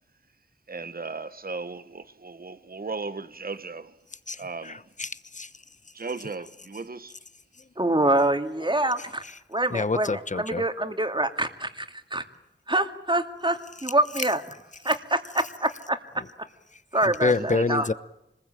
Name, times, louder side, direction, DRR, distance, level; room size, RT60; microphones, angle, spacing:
voice 1, 0.7-3.9 4.4-4.8 5.9-7.2 17.3-17.9, right 4 dB, 50° right, 1.2 m, -36 dB
voice 2, 4.3-5.5 9.7-10.6 17.2-17.9, left 3 dB, 40° left, 1.0 m, -27 dB
voice 3, 7.8-9.2 9.5-12.2 12.7-14.4 14.8-16.0 16.9-17.9, right 1 dB, 25° right, 2.5 m, -25 dB
26.5 x 21.0 x 9.0 m
cardioid pair, 45°, 20 cm